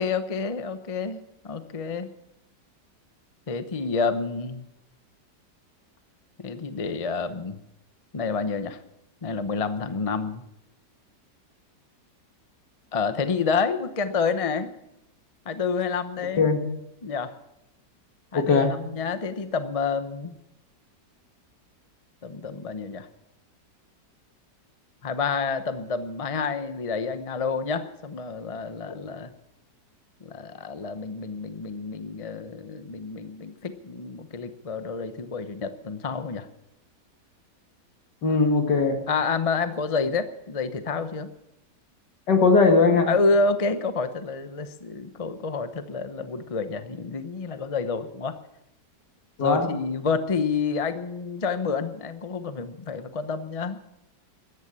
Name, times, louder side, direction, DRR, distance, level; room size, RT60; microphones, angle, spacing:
voice 1, 0.0-2.1 3.5-4.6 6.4-7.6 8.1-8.8 9.2-10.4 12.9-14.7 15.5-16.5 17.0-17.3 18.3-20.4 22.2-23.1 25.0-29.3 30.2-36.5 39.1-41.3 43.1-48.3 49.4-53.8, left 4 dB, 30° left, 10 dB, 0.7 m, -28 dB
voice 2, 18.3-18.7 38.2-39.1 42.3-43.1 49.4-49.7, left 4 dB, 70° left, 5 dB, 2.5 m, -19 dB
14.5 x 10.5 x 8.8 m, 0.85 s
omnidirectional pair, 1.9 m